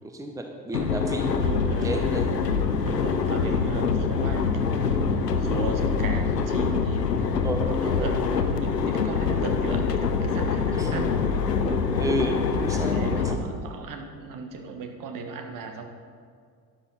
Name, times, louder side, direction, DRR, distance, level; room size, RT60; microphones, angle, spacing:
voice 1, 0.0-1.3 1.8-2.3 3.4-3.6 7.4-7.6 8.0-8.1 10.7-11.0 12.0-13.1, right 1 dB, 5° right, 3 dB, 1.0 m, -31 dB
sound 1, 0.7-13.4, left 5 dB, 85° left, 0.8 m, -25 dB
voice 2, 1.4-2.5 2.8-11.2 11.6-12.4 12.7-15.8, right 4 dB, 40° right, 4 dB, 1.5 m, -37 dB
12.5 x 9.9 x 4.1 m, 2.1 s
figure-of-eight pair, 65°, 48 cm